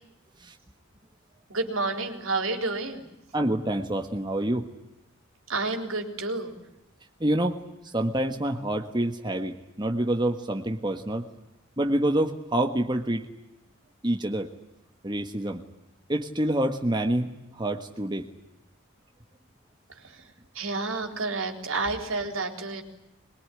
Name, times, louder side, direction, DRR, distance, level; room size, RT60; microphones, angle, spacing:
voice 1, 1.5-3.1 5.5-6.6 19.9-22.8, right 3 dB, 75° right, 5 dB, 3.9 m, -30 dB
voice 2, 3.3-4.7 7.2-11.3 11.8-13.2 14.0-14.5 15.0-15.6 16.1-18.3, right 1 dB, 20° right, 4 dB, 1.5 m, -27 dB
23.0 x 22.5 x 9.9 m, 0.90 s
head